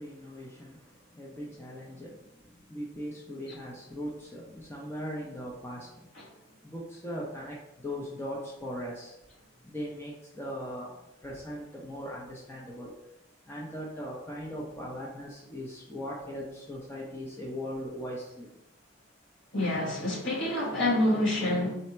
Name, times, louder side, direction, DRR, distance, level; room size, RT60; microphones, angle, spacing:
voice 1, 0.0-6.1 6.6-9.2 9.6-12.9 13.5-18.5, equal, 10° left, -4 dB, 0.6 m, -39 dB
voice 2, 19.5-21.7, left 1 dB, 60° left, -6 dB, 1.7 m, -27 dB
4.3 x 2.7 x 4.3 m, 0.87 s
head